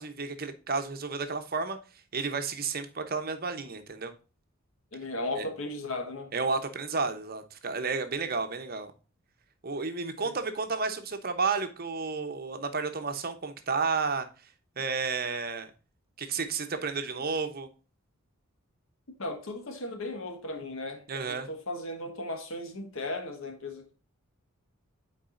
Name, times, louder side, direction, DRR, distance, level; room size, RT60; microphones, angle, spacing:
voice 1, 0.0-1.8 2.1-4.1 5.4-5.5 6.3-8.9 9.6-14.3 14.8-15.7 16.2-17.7 21.1-21.5, right 4 dB, 45° right, 0.9 m, -32 dB
voice 2, 4.9-6.3 10.2-10.4 19.2-24.0, left 2 dB, 70° left, 1.4 m, -36 dB
8.8 x 4.7 x 2.5 m
head